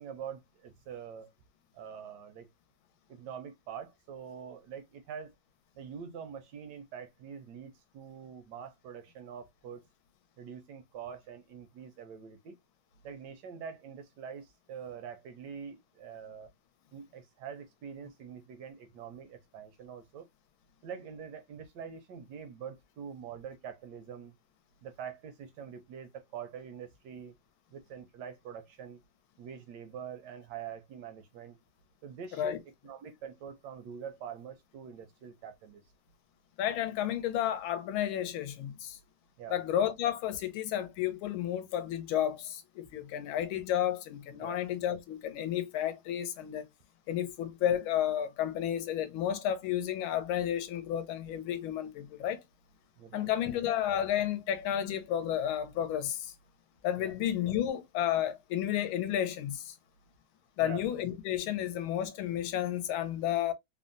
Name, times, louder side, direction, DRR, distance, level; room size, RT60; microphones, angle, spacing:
voice 1, 0.0-1.3 1.7-2.5 3.1-5.3 5.8-9.8 10.4-12.6 13.0-16.5 16.9-20.3 20.8-24.3 24.8-27.3 27.7-29.0 29.4-31.6 32.0-35.8 39.4-39.6 44.4-44.6 53.0-53.5 57.0-57.1 60.6-60.9, right 7 dB, 75° right, 1.0 m, -45 dB
voice 2, 36.6-39.0 39.5-46.7 47.1-52.4 53.1-56.3 56.8-59.7 60.6-63.5, left 11 dB, 85° left, 1.4 m, -32 dB
3.5 x 2.1 x 2.4 m
omnidirectional pair, 2.3 m